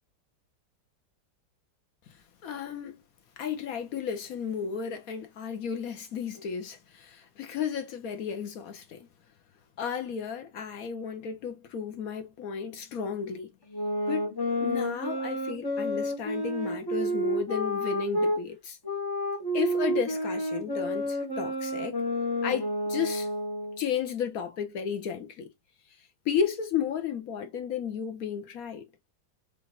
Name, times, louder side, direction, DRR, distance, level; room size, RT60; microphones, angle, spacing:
voice 1, 2.4-3.0 3.4-9.1 9.8-13.5 14.1-14.3 14.6-18.8 19.5-22.0 22.4-23.3 23.8-25.5 26.2-28.8, left 7 dB, 65° left, 0.9 m, -33 dB
sound 1, 13.7-18.4 18.8-23.8, equal, 30° left, 0.4 m, -30 dB
5.0 x 2.4 x 3.1 m
omnidirectional pair, 2.1 m